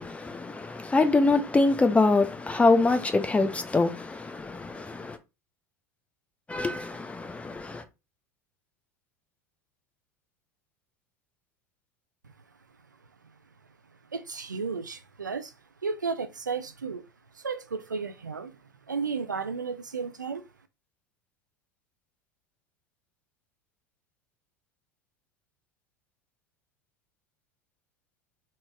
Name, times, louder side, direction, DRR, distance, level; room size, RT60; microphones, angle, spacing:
voice 1, 0.0-5.2 6.5-7.8, left 3 dB, 15° left, 0.7 m, -24 dB
voice 2, 14.1-15.5 15.8-17.0 17.3-18.6 18.9-20.5, right 5 dB, 90° right, 0.4 m, -33 dB
4.0 x 3.1 x 2.3 m
figure-of-eight pair, 80°, 10 cm